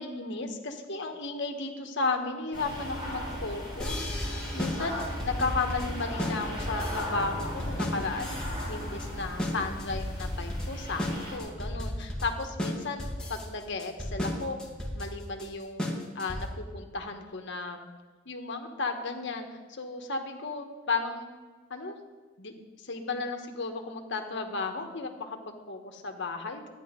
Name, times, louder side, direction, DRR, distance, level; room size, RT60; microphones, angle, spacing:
voice 1, 0.0-8.4 8.7-13.0 13.3-14.6 15.0-15.8 16.1-17.8 18.2-21.3 21.7-22.0 22.4-22.5 22.8-26.6, left 3 dB, 60° left, 4 dB, 1.4 m, -34 dB
sound 1, 2.5-11.4, equal, 20° right, 3.0 m, -37 dB
sound 2, 3.8-16.7, left 1 dB, 5° left, 1.8 m, -34 dB
13.0 x 10.0 x 5.2 m, 1.4 s
head